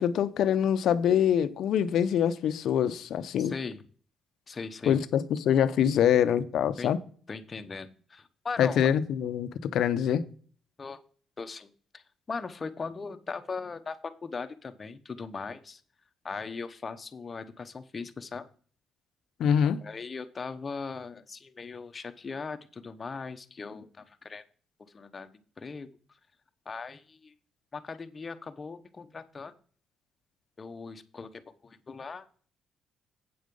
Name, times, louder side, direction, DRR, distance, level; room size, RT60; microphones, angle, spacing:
voice 1, 0.0-3.5 4.9-7.0 8.6-10.2 19.4-19.8, left 9 dB, 75° left, 0.7 m, -25 dB
voice 2, 3.4-3.8 4.5-5.0 6.8-6.9 7.3-8.8 10.8-11.0 11.4-15.8 16.2-18.5 19.8-24.4 24.9-25.3 25.6-25.9 26.6-27.3 27.7-29.5 30.6-32.3, left 4 dB, 35° left, 1.0 m, -39 dB
8.6 x 6.3 x 5.3 m
cardioid pair, 90°, 0 cm